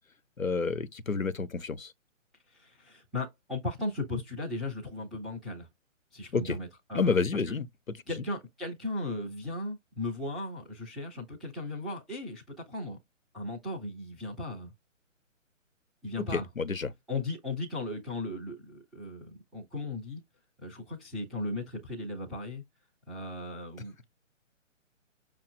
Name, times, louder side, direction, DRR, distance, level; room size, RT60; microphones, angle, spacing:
voice 1, 0.4-1.9 6.3-6.6 6.9-7.7 16.2-16.9, left 4 dB, 90° left, 0.8 m, -29 dB
voice 2, 2.5-5.7 6.1-7.2 7.5-7.6 8.1-13.0 13.3-14.7 16.0-16.5 17.1-20.2 20.6-22.6 23.1-24.0, left 2 dB, ahead, 0.4 m, -37 dB
6.1 x 2.4 x 2.4 m
figure-of-eight pair, 135°, 39 cm